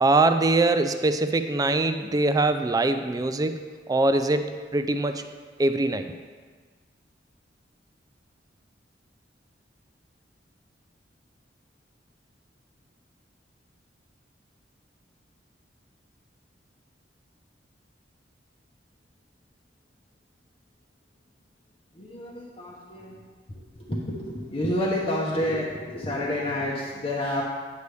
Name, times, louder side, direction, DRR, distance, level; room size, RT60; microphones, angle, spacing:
voice 1, 0.0-3.6 3.9-5.2 5.6-6.1, right 2 dB, 20° right, 8 dB, 0.3 m, -23 dB
voice 2, 21.9-23.2 23.5-27.4, left 1 dB, 35° left, -5 dB, 0.9 m, -29 dB
9.4 x 6.8 x 3.3 m, 1.5 s
head